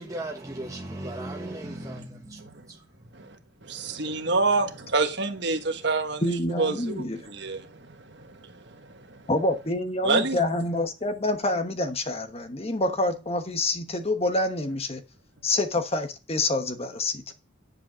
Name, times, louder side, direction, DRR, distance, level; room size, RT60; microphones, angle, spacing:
voice 1, 0.0-3.1, right 1 dB, 15° right, 1.2 m, -37 dB
voice 2, 3.1-9.3 10.0-10.4, right 3 dB, 60° right, 1.4 m, -28 dB
voice 3, 6.2-7.2 9.3-15.0 15.4-17.3, left 2 dB, 30° left, 1.1 m, -27 dB
10.0 x 5.5 x 6.1 m
head